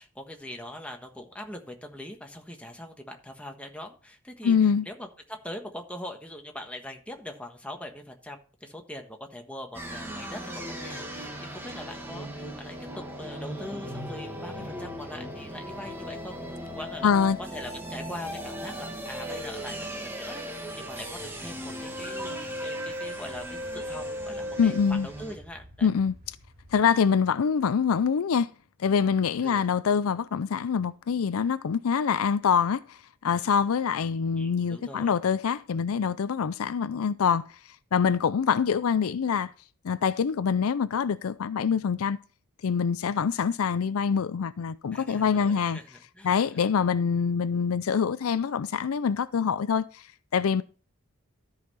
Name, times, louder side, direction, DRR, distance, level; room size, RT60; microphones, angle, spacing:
voice 1, 0.0-16.4 16.8-17.1 17.5-25.9 29.4-29.7 34.4-35.1 44.9-46.7, left 1 dB, 5° left, 1.4 m, -42 dB
voice 2, 4.4-4.9 17.0-17.4 24.6-25.1 25.8-26.1 26.7-28.5 28.8-37.5 37.9-39.5 39.8-42.2 42.6-45.8 46.2-50.0 50.3-50.6, left 6 dB, 75° left, 0.4 m, -25 dB
sound 1, 9.7-25.4, equal, 10° right, 1.8 m, -37 dB
sound 2, 20.6-26.9, left 1 dB, 40° right, 2.6 m, -52 dB
13.0 x 5.6 x 4.2 m
head